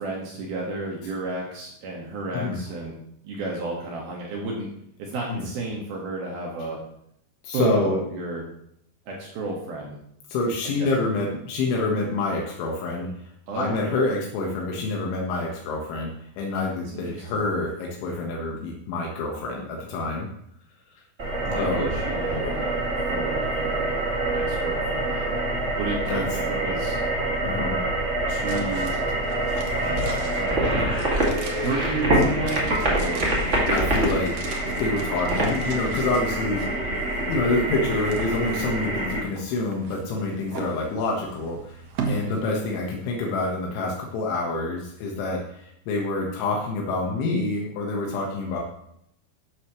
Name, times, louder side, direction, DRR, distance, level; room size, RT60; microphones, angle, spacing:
voice 1, 0.0-2.9 3.2-4.7 5.0-6.8 7.5-8.4 9.1-10.0 10.6-10.9 13.5-13.8 16.9-17.4 21.4-22.8 23.1-23.9 24.3-25.4 25.8-27.0 28.3-30.8 31.6-33.3 42.2-42.6, right 2 dB, 60° right, -2 dB, 3.3 m, -32 dB
voice 2, 7.4-8.0 10.3-13.1 13.5-20.3 21.6-21.9 26.1-26.2 27.4-27.8 33.7-34.3 34.8-37.0 37.3-48.6, left 3 dB, 80° left, -1 dB, 3.9 m, -27 dB
sound 1, 21.2-39.2, right 1 dB, 30° right, 1.2 m, -25 dB
sound 2, 28.5-43.6 43.9-44.0, right 4 dB, 75° right, 1.5 m, -39 dB
13.0 x 11.0 x 3.2 m, 0.71 s
omnidirectional pair, 5.4 m